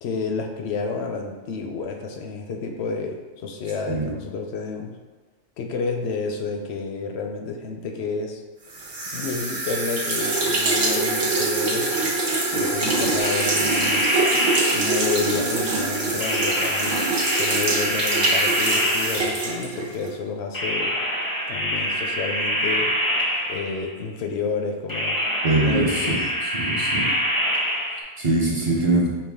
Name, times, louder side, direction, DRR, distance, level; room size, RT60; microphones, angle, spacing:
voice 1, 0.0-4.9 5.6-8.4 9.1-12.2 12.5-14.1 14.7-17.1 17.4-20.9 21.5-22.9 23.5-25.2 25.6-26.3, left 4 dB, 65° left, 3 dB, 0.8 m, -30 dB
sound 1, 8.7-20.1, right 2 dB, 85° right, 1.3 m, -24 dB
sound 2, 13.2-15.3 16.2-19.6 20.5-23.9 24.9-28.0, equal, 25° left, 0.5 m, -25 dB
voice 2, 25.4-26.2 26.5-27.0 28.2-29.1, right 2 dB, 35° right, -4 dB, 0.6 m, -22 dB
5.4 x 2.3 x 3.4 m, 1.2 s
omnidirectional pair, 1.2 m